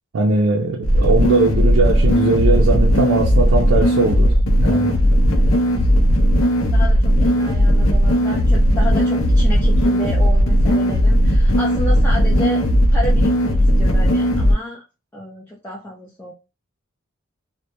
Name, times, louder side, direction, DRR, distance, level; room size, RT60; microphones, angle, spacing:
voice 1, 0.1-4.9, right 3 dB, 70° right, 0.4 m, -20 dB
sound 1, 0.8-14.5, equal, 70° left, 0.5 m, -16 dB
voice 2, 5.3-5.6 6.7-12.6 12.9-14.8 15.1-16.3, equal, 10° left, 0.4 m, -31 dB
2.1 x 2.0 x 2.8 m
head